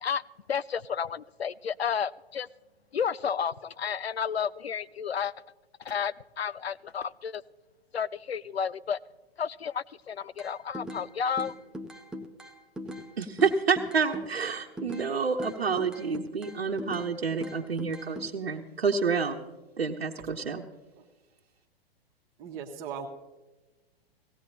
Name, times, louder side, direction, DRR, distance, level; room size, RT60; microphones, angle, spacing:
voice 1, 0.5-2.5 2.9-5.3 5.9-7.4 7.9-9.0 9.4-11.5, left 7 dB, 80° left, 17 dB, 0.5 m, -31 dB
sound 1, 10.4-11.1 11.4-13.1 13.4-15.1 15.4-17.1 17.4-18.3, equal, ahead, 0.4 m, -39 dB
voice 2, 13.2-19.4 19.8-20.6, right 5 dB, 70° right, 0 dB, 1.0 m, -28 dB
voice 3, 22.4-23.1, right 7 dB, 30° right, 2 dB, 1.3 m, -38 dB
18.5 x 16.5 x 2.8 m, 1.2 s
figure-of-eight pair, 110°, 31 cm